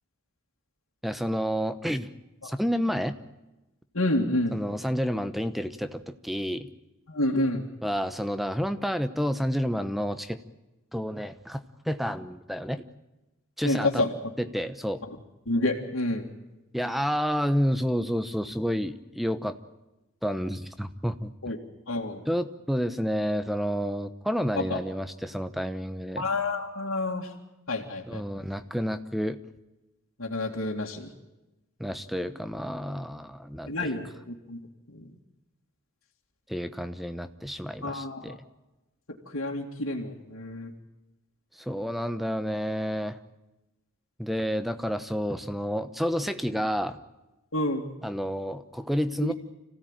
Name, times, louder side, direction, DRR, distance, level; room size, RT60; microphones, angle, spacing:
voice 1, 1.0-2.1 2.4-3.2 4.5-6.7 7.8-10.4 10.9-12.8 13.6-14.0 14.4-15.0 16.7-19.6 20.2-21.3 22.3-26.2 28.1-29.4 31.8-33.9 36.5-38.4 41.5-43.2 44.2-47.0 48.0-49.3, equal, ahead, 11 dB, 0.9 m, -30 dB
voice 2, 3.9-4.6 7.1-7.6 13.6-14.3 15.5-16.3 21.4-21.6 21.9-22.2 24.7-24.8 26.2-27.3 27.7-28.2 30.2-31.1 33.7-34.6 34.9-35.0 37.8-38.4 39.3-40.7 47.5-47.9 49.2-49.3, left 2 dB, 80° left, -5 dB, 2.3 m, -29 dB
26.0 x 16.5 x 9.0 m, 1.0 s
head